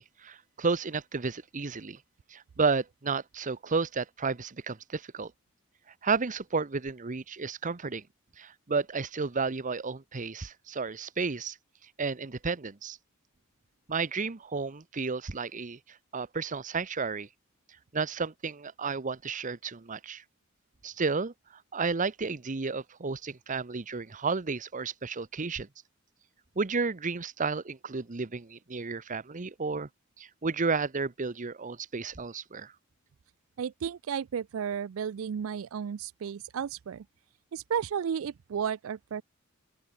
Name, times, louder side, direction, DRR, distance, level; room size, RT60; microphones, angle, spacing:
voice 1, 0.0-2.0 2.3-5.3 6.0-8.0 8.4-11.6 12.0-13.0 13.9-17.3 17.9-20.2 20.8-21.3 21.7-25.7 26.6-29.9 30.2-32.7, right 4 dB, 40° right, 0.8 m, -32 dB
voice 2, 33.6-37.0 37.5-39.2, right 7 dB, 70° right, 0.4 m, -33 dB
open air
head